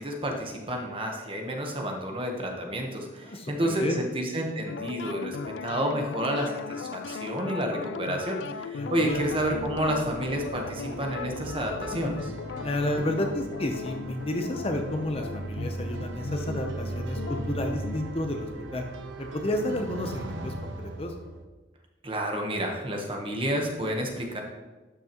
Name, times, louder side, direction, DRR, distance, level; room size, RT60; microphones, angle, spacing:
voice 1, 0.0-12.3 22.0-24.4, right 1 dB, 30° right, 2 dB, 1.1 m, -30 dB
voice 2, 3.2-4.0 8.8-9.2 12.6-18.8 19.2-20.7 21.0-21.1, left 1 dB, 30° left, 4 dB, 0.7 m, -31 dB
sound 1, 4.7-18.0, left 5 dB, 70° left, 0.3 m, -38 dB
sound 2, 9.1-21.4, right 2 dB, 85° right, 0.8 m, -38 dB
12.0 x 6.0 x 3.0 m, 1.2 s
head